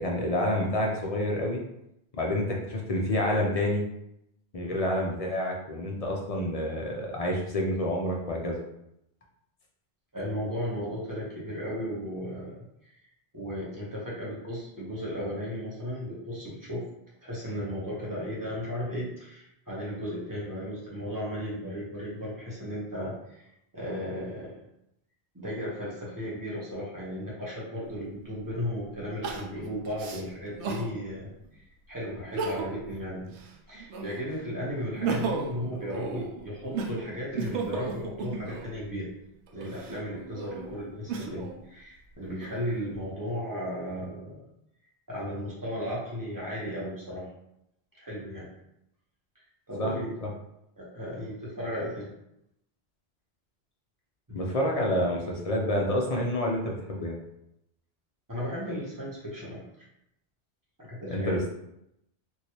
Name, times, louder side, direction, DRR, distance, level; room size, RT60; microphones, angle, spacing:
voice 1, 0.0-1.6 2.1-3.8 4.5-8.6 49.8-49.9 50.2-50.3 54.3-57.2 61.1-61.4, left 1 dB, 45° left, -1 dB, 0.5 m, -28 dB
voice 2, 10.1-12.5 12.8-13.0 13.3-16.8 17.2-24.5 25.3-33.3 33.7-39.1 39.5-44.4 45.1-47.3 48.0-48.5 49.3-50.2 50.8-52.1 54.3-54.4 58.3-59.6 60.8-61.3, equal, 20° right, -7 dB, 1.0 m, -35 dB
Crying sobbing, 27.9-28.0 29.2-30.9 31.4-31.5 32.2-32.9 33.3-34.3 34.8-38.8 39.5-41.6 42.1-42.9, right 4 dB, 80° right, 0.9 m, -35 dB
3.0 x 2.7 x 2.9 m, 0.81 s
omnidirectional pair, 1.1 m